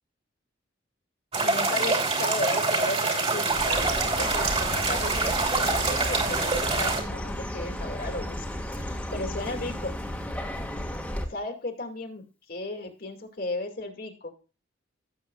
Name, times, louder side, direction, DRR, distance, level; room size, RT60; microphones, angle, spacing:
sound 1, 1.3-7.0, right 3 dB, 30° right, 2.8 m, -25 dB
voice 1, 1.4-8.5 8.7-9.9 11.3-14.3, left 2 dB, 50° left, 4 dB, 2.3 m, -35 dB
Chirp tweet, 3.5-11.3, left 1 dB, 5° left, 1.7 m, -34 dB
17.0 x 7.5 x 2.3 m, 0.34 s
head